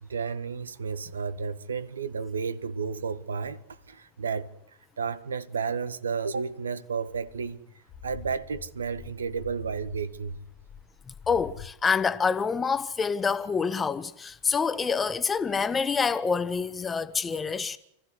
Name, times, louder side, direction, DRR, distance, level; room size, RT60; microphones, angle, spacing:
voice 1, 0.0-7.6 8.0-10.4, right 5 dB, 70° right, 1.5 m, -32 dB
sound 1, 7.2-11.7, left 8 dB, 40° left, 1.3 m, -47 dB
voice 2, 11.3-17.8, left 5 dB, 15° left, 1.3 m, -27 dB
30.0 x 15.5 x 9.8 m
figure-of-eight pair, 90°, 0 cm